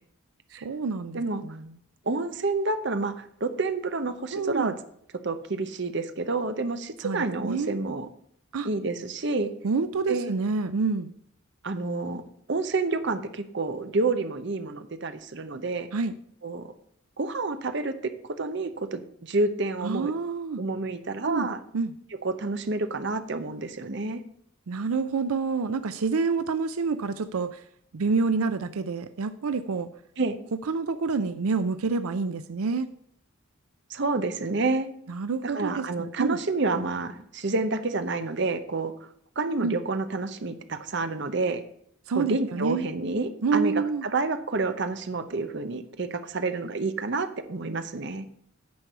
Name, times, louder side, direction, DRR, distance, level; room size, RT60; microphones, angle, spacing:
voice 1, 0.6-1.7 4.3-4.7 7.0-7.8 8.5-8.7 9.6-11.1 15.9-16.1 19.8-20.6 21.3-21.5 21.7-21.9 24.7-27.6 27.9-29.9 30.7-32.9 35.1-36.4 39.6-39.8 42.1-42.9 43.4-44.1, right 4 dB, 90° right, 11 dB, 0.5 m, -28 dB
voice 2, 2.1-4.7 5.2-8.1 8.6-9.5 10.1-10.3 11.6-12.2 12.5-15.9 16.4-16.7 17.2-20.1 20.6-21.6 22.2-24.2 30.2-30.4 33.9-34.9 35.4-39.1 39.4-41.6 42.1-48.2, right 3 dB, 55° right, 9 dB, 0.8 m, -29 dB
9.6 x 4.7 x 6.7 m, 0.68 s
head